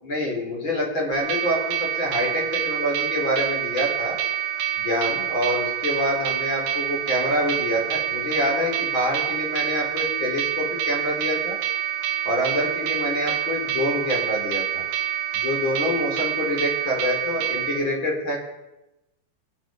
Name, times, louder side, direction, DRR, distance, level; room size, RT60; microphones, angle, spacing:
voice 1, 0.0-4.2 4.8-11.6 12.2-14.8 15.3-18.4, left 1 dB, 30° left, -1 dB, 4.6 m, -26 dB
sound 1, 1.1-17.8, right 11 dB, 75° right, 3.2 m, -27 dB
24.5 x 9.3 x 5.3 m, 0.97 s
omnidirectional pair, 4.5 m